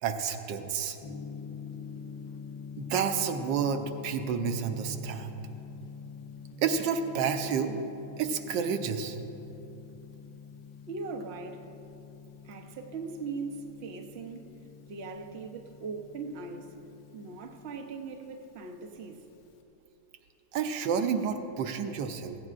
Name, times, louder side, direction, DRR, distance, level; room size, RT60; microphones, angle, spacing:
voice 1, 0.0-1.0 2.8-5.3 6.6-7.8 8.2-9.2 20.5-22.4, right 6 dB, 70° right, 1.2 m, -30 dB
Gong, 1.0-19.6, left 6 dB, 65° left, 1.4 m, -46 dB
voice 2, 10.9-11.7 12.4-14.6 14.9-16.7 17.1-19.3, right 4 dB, 90° right, 0.5 m, -40 dB
17.0 x 15.0 x 2.5 m
omnidirectional pair, 2.3 m